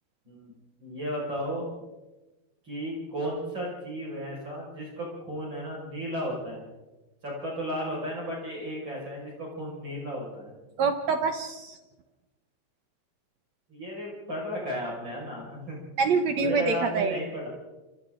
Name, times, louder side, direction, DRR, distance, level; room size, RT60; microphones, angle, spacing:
voice 1, 0.8-1.7 2.7-6.7 7.2-10.5 13.7-15.8 16.4-17.5, equal, 30° right, -3 dB, 6.2 m, -34 dB
voice 2, 10.8-11.8 16.0-17.2, right 5 dB, 65° right, 7 dB, 1.8 m, -25 dB
28.0 x 26.5 x 3.8 m, 1.1 s
omnidirectional pair, 4.4 m